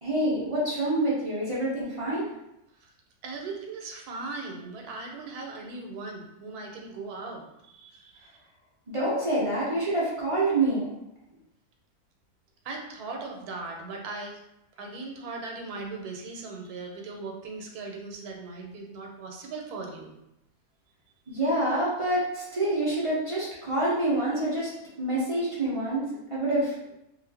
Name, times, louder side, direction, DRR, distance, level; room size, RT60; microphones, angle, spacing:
voice 1, 0.0-2.3 8.9-10.9 21.3-24.7 25.0-26.1 26.3-26.7, right 1 dB, 50° right, -7 dB, 0.4 m, -27 dB
voice 2, 3.2-8.4 12.6-14.4 14.8-20.1, right 3 dB, 85° right, 1 dB, 1.1 m, -39 dB
2.5 x 2.4 x 3.3 m, 0.86 s
omnidirectional pair, 1.6 m